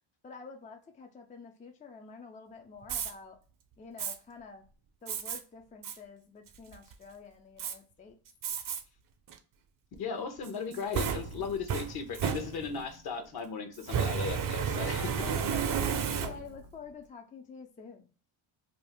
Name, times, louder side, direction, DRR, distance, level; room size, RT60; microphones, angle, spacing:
voice 1, 0.2-3.4 3.8-4.6 5.0-8.2 15.2-15.6 15.9-18.1, left 5 dB, 20° left, 4 dB, 0.3 m, -48 dB
Fire, 2.8-3.1 4.0-4.2 5.1-5.4 5.8-6.0 6.5-6.9 7.6-7.7 8.4-8.8 9.3-9.4 10.4-12.9 13.8-16.7, right 7 dB, 45° right, 0.6 m, -32 dB
voice 2, 10.0-15.3, left 5 dB, 50° left, 6 dB, 0.8 m, -37 dB
2.7 x 2.4 x 3.4 m, 0.39 s
cardioid pair, 95°, 47 cm